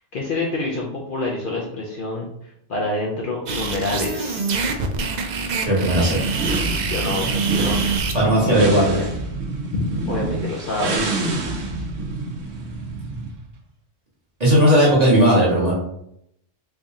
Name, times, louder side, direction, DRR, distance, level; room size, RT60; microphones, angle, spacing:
voice 1, 0.1-4.6 6.9-7.8 8.1-9.0 9.7-11.2, left 2 dB, 55° left, -2 dB, 0.7 m, -27 dB
sound 1, 3.5-8.1, right 4 dB, 70° right, 0.4 m, -25 dB
voice 2, 5.7-6.2 8.1-9.1 14.4-15.7, equal, 35° right, -5 dB, 1.2 m, -16 dB
sound 2, 5.8-13.4, right 2 dB, 85° right, 1.0 m, -27 dB
3.4 x 2.7 x 3.5 m, 0.74 s
omnidirectional pair, 1.3 m